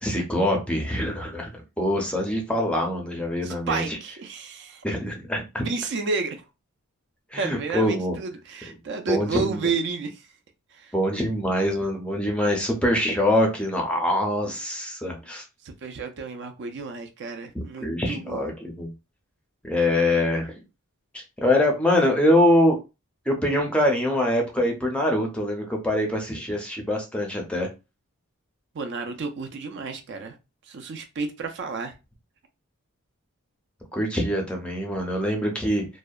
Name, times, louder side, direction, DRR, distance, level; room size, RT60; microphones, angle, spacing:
voice 1, 0.0-1.5 1.8-4.0 4.8-5.6 7.3-8.2 9.1-9.7 10.9-15.4 17.5-18.9 19.6-20.5 21.1-22.8 23.3-27.7 33.9-35.9, left 1 dB, 5° left, 0.5 m, -24 dB
voice 2, 3.4-4.8 5.6-6.4 7.4-10.3 10.7-10.9 15.6-18.5 28.7-30.4 30.7-31.9, right 4 dB, 55° right, 0.4 m, -31 dB
2.7 x 2.1 x 2.3 m
head